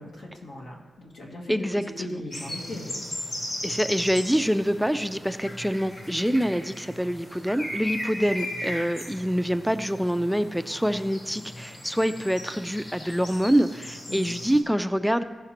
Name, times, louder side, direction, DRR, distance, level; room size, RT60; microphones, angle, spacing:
voice 1, 0.0-3.0 14.1-14.4, left 1 dB, 85° left, -2 dB, 1.8 m, -38 dB
voice 2, 1.5-1.8 2.1-2.2 3.6-15.2, equal, ahead, 10 dB, 0.3 m, -25 dB
sound 1, 2.3-14.6, left 1 dB, 55° left, 2.4 m, -37 dB
15.5 x 5.7 x 2.9 m, 1.3 s
cardioid pair, 85°, 0 cm